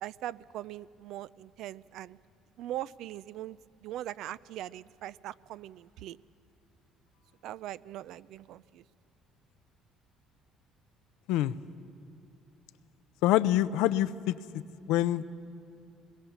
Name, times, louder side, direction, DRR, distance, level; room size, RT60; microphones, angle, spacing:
voice 1, 0.0-2.2 2.6-6.2 7.4-8.8, right 13 dB, 70° right, 18 dB, 0.4 m, -41 dB
voice 2, 13.2-14.3 14.9-15.2, left 14 dB, 80° left, 15 dB, 0.6 m, -25 dB
22.0 x 20.5 x 7.1 m, 2.6 s
supercardioid pair, 75°, 0 cm